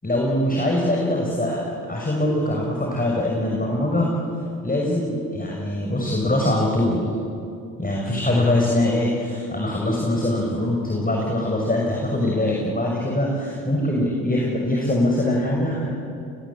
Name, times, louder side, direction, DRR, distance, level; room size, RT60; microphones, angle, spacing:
voice 1, 0.0-4.1 4.6-7.0 7.8-15.9, left 1 dB, 20° left, -1 dB, 6.3 m, -23 dB
27.0 x 20.5 x 8.6 m, 2.6 s
hypercardioid pair, 50°, 46 cm